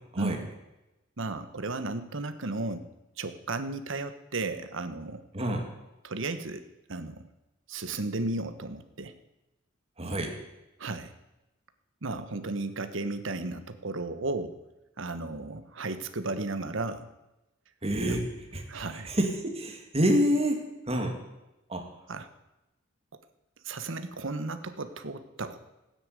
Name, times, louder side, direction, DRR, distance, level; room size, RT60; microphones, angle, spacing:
voice 1, 0.2-0.5 1.2-2.9 3.2-5.2 6.0-6.6 6.9-7.3 7.7-9.2 10.8-11.1 12.0-14.6 15.0-17.1 18.7-19.1 22.1-22.3 23.6-25.6, right 2 dB, 65° right, 10 dB, 1.1 m, -34 dB
voice 2, 5.3-5.6 10.0-10.3 17.8-21.2 21.7-21.9, equal, 30° right, 3 dB, 2.4 m, -28 dB
14.5 x 9.7 x 8.2 m, 0.97 s
head